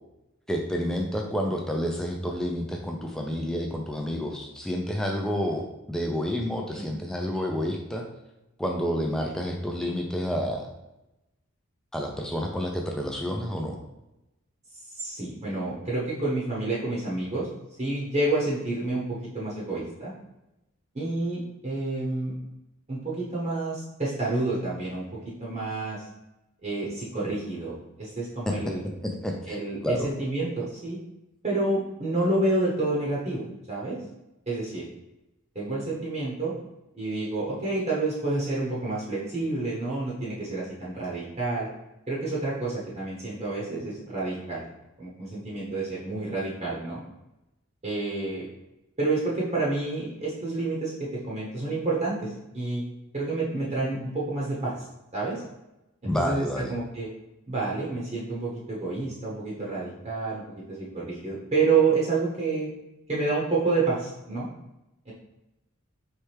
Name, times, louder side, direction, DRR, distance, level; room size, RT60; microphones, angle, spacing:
voice 1, 0.5-8.0 8.6-10.7 11.9-13.8 28.5-28.6 29.0-29.6 29.8-30.1 56.0-56.7, equal, 5° left, 1 dB, 0.4 m, -29 dB
voice 2, 14.9-17.5 17.8-20.1 20.9-22.4 22.9-26.1 26.6-28.8 29.5-31.0 31.4-34.0 34.5-34.8 35.5-36.5 36.9-41.7 42.1-44.6 45.0-47.0 47.8-48.5 49.0-52.8 53.1-54.9 55.1-55.4 56.0-57.1 57.5-62.7 63.1-64.5 65.0-65.1, right 3 dB, 30° right, -6 dB, 0.9 m, -29 dB
4.4 x 3.3 x 3.3 m, 0.93 s
head